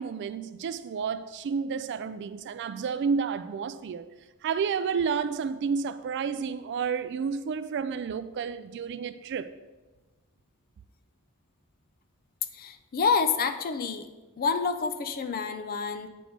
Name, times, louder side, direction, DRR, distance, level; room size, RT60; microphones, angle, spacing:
voice 1, 0.0-4.1 4.4-9.5, right 6 dB, 55° right, 0.3 m, -30 dB
voice 2, 12.5-14.1 14.4-16.1, left 5 dB, 40° left, 0.4 m, -28 dB
8.6 x 3.5 x 4.9 m
head